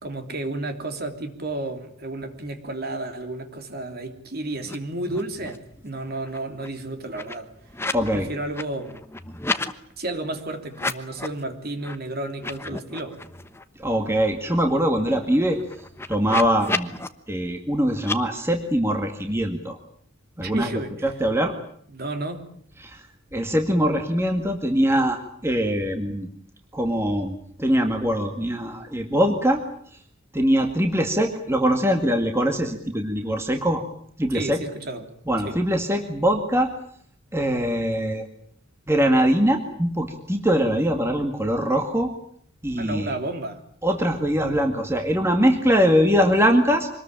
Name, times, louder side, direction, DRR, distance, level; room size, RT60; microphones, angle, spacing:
voice 1, 0.0-7.5 8.1-9.0 10.0-13.2 20.4-21.1 21.9-22.4 34.3-35.1 35.4-35.6 42.8-43.6, right 2 dB, 45° right, 6 dB, 3.1 m, -32 dB
sound 1, 4.6-4.8 5.0-5.7 6.0-8.1 8.4-9.7 10.7-11.4 11.8-11.9 12.3-13.6 14.0-14.1 14.4-17.1 18.0-18.2, left 2 dB, 10° left, 1.1 m, -33 dB
voice 2, 7.9-8.3 13.8-15.6 16.1-16.9 17.3-19.8 20.4-20.7 21.0-21.5 23.3-26.3 26.7-29.6 30.3-33.8 34.2-34.6 35.3-36.7 37.3-38.3 38.9-42.1 42.6-43.2 43.8-46.9, equal, 10° right, 4 dB, 2.0 m, -22 dB
25.5 x 20.0 x 9.0 m, 0.64 s
head